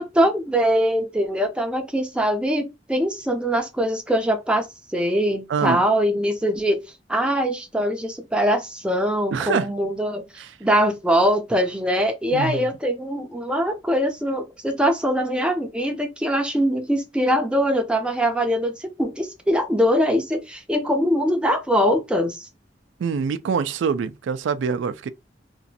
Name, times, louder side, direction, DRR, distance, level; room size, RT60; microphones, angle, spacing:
voice 1, 0.0-4.7 4.9-6.8 7.1-10.3 10.6-22.5, equal, 5° right, 0.5 m, -22 dB
voice 2, 5.5-5.8 9.3-9.7 10.4-10.6 12.3-12.6 23.0-25.1, right 6 dB, 85° right, 0.3 m, -25 dB
2.9 x 2.5 x 2.7 m
head